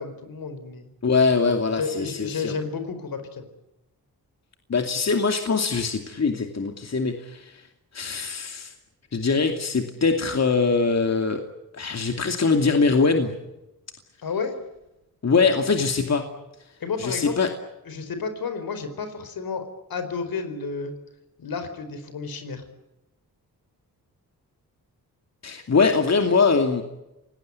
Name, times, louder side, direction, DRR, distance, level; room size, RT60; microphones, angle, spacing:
voice 1, 0.0-0.9 1.8-3.4 14.2-14.5 16.8-17.5 17.8-20.9 21.4-22.7, left 5 dB, 75° left, 9 dB, 4.7 m, -31 dB
voice 2, 1.0-2.5 4.7-7.6 7.9-8.7 9.1-11.4 11.7-13.4 15.2-16.3 17.0-17.5 25.4-26.8, left 4 dB, 45° left, 5 dB, 2.6 m, -22 dB
27.5 x 19.0 x 9.7 m, 0.94 s
cardioid pair, 80°, 36 cm